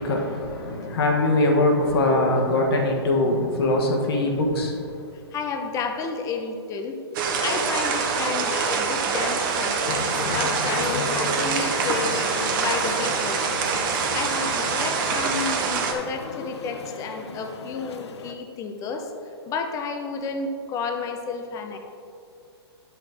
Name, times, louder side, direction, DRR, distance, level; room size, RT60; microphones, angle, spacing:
voice 1, 0.0-4.8, left 2 dB, 60° left, 1 dB, 1.3 m, -22 dB
voice 2, 5.3-6.9 7.4-13.6 14.1-19.1 19.5-21.8, left 4 dB, 25° left, 5 dB, 0.8 m, -31 dB
sound 1, 7.1-15.9, right 5 dB, 50° right, 1.0 m, -25 dB
sound 2, 9.9-18.3, left 5 dB, 75° left, 0.7 m, -34 dB
10.0 x 6.0 x 3.5 m, 2.5 s
hypercardioid pair, 130°, 14 cm